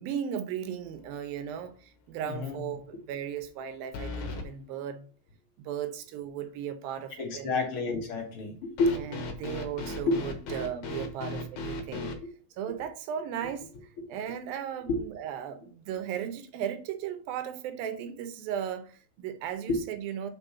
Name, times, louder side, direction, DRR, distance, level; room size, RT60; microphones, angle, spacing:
voice 1, 0.0-5.1 5.6-7.8 8.9-12.1 12.6-13.7 14.1-20.3, right 9 dB, 85° right, 2.7 m, -36 dB
sound 1, 0.9-1.3 1.6-1.7 3.9-4.5 8.8-12.2, left 2 dB, 65° left, 2.4 m, -36 dB
voice 2, 2.2-2.6 7.2-8.9 10.1-10.2 14.9-15.0 19.7-19.8, left 3 dB, 50° left, 2.0 m, -28 dB
5.4 x 5.4 x 5.6 m
omnidirectional pair, 4.0 m